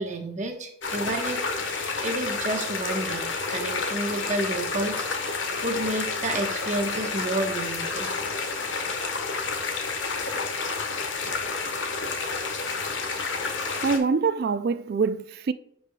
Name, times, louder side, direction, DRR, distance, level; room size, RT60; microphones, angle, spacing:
voice 1, 0.0-8.1 8.8-8.9, right 2 dB, 40° right, 1.1 m, -31 dB
sound 1, 0.8-14.0, left 4 dB, 80° left, 1.2 m, -30 dB
voice 2, 13.8-15.5, right 5 dB, 55° right, 0.4 m, -24 dB
10.5 x 4.9 x 2.3 m
head